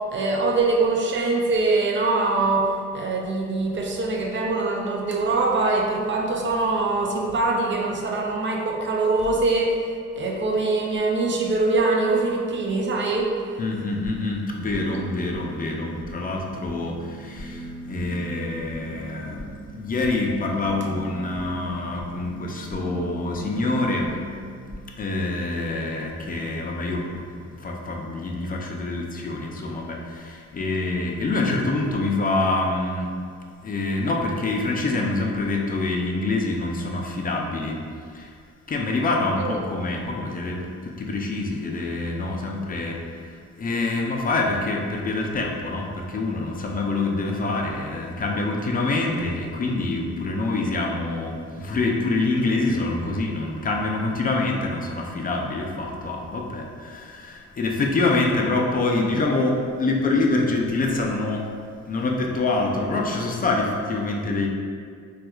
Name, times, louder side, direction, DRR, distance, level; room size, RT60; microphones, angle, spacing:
voice 1, 0.0-9.8 10.2-13.4 39.4-39.6, right 3 dB, 40° right, 0 dB, 0.5 m, -23 dB
voice 2, 13.6-24.1 25.0-33.1 33.6-37.8 38.1-38.3 38.7-61.5 61.9-64.5, left 2 dB, 30° left, 0 dB, 0.4 m, -26 dB
sound 1, 13.9-24.8, right 1 dB, 10° left, 1.2 m, -39 dB
4.0 x 2.4 x 2.3 m, 2.1 s
cardioid pair, 90°, 30 cm